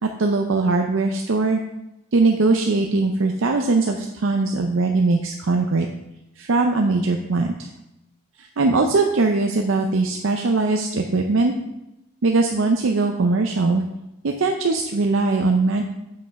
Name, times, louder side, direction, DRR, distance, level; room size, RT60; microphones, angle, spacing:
voice 1, 0.0-1.6 2.1-5.9 6.4-7.7 8.4-11.5 12.2-13.8 14.2-15.8, right 3 dB, 65° right, 3 dB, 0.5 m, -20 dB
7.9 x 5.3 x 4.6 m, 0.91 s
head